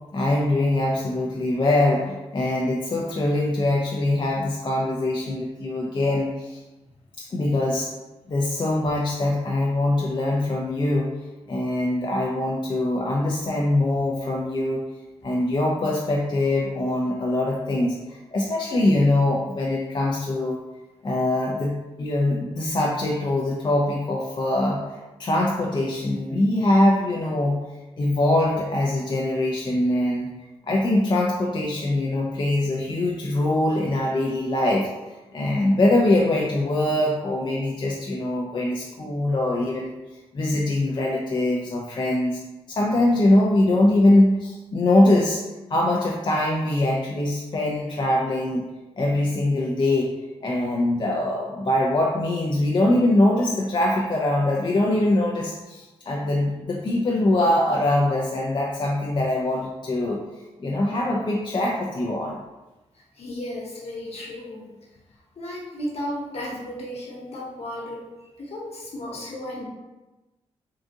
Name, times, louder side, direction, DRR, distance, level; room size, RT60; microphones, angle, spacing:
voice 1, 0.1-6.6 7.2-7.9 8.3-11.1 11.5-14.8 15.2-20.6 21.0-27.6 28.0-30.3 30.7-34.9 35.3-39.9 40.3-42.4 42.7-45.4 45.7-48.7 49.0-50.1 50.4-60.2 60.6-62.4, left 1 dB, 40° left, -2 dB, 0.5 m, -23 dB
voice 2, 63.2-64.7 65.4-68.0 68.4-69.6, left 1 dB, 65° left, -4 dB, 1.1 m, -34 dB
3.7 x 2.4 x 2.7 m, 1.1 s
cardioid pair, 55°, 12 cm